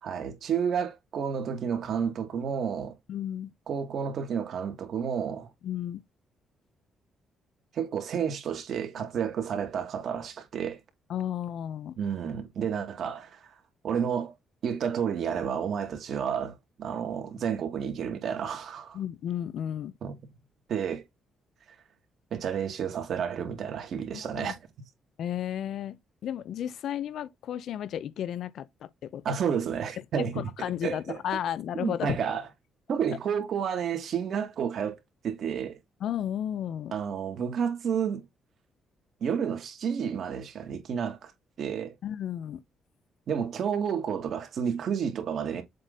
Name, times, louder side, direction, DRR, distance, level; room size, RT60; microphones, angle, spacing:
voice 1, 0.0-3.0 3.7-5.5 7.7-10.8 12.0-13.5 13.8-14.3 14.6-19.0 20.0-20.2 20.7-21.0 22.3-24.5 29.2-30.4 30.8-31.2 31.7-32.5 32.9-35.0 35.2-35.8 36.9-38.2 39.2-41.3 41.6-41.9 43.3-45.6, right 7 dB, 65° right, 2.3 m, -30 dB
voice 2, 3.1-3.5 5.6-6.0 11.1-12.0 18.9-19.9 24.1-24.5 25.2-29.2 30.2-32.2 36.0-36.9 42.0-42.6, left 10 dB, 70° left, 0.7 m, -33 dB
7.6 x 3.8 x 4.1 m
cardioid pair, 90°, 0 cm